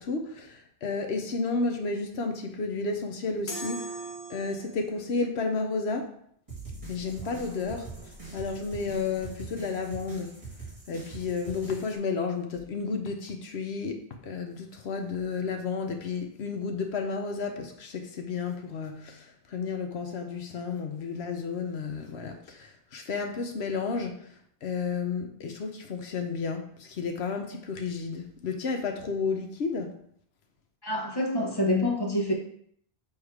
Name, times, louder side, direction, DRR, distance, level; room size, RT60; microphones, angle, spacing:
voice 1, 0.0-4.0 4.3-6.1 6.9-10.3 10.9-30.0, left 4 dB, 80° left, 4 dB, 1.0 m, -32 dB
sound 1, 3.5-5.0, right 1 dB, 50° left, 1.3 m, -38 dB
sound 2, 6.5-12.0, right 3 dB, 30° right, 2.2 m, -43 dB
voice 2, 30.8-32.3, left 1 dB, 25° left, -2 dB, 1.2 m, -26 dB
7.1 x 3.2 x 4.8 m, 0.65 s
omnidirectional pair, 1.1 m